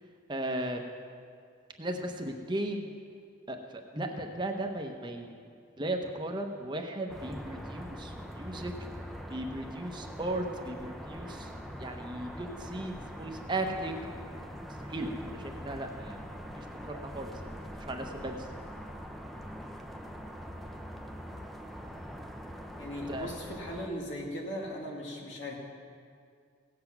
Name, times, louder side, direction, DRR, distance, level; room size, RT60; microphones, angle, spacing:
voice 1, 0.3-0.8 1.8-2.9 3.5-5.3 5.8-8.7 9.3-11.5 11.8-14.0 14.9-16.2 16.6-18.5 23.1-23.5, right 1 dB, 25° right, 3 dB, 0.8 m, -36 dB
sound 1, 7.1-23.9, equal, ahead, 0.5 m, -43 dB
voice 2, 22.8-25.5, equal, 80° left, -1 dB, 2.2 m, -38 dB
17.0 x 8.0 x 5.9 m, 2.2 s
head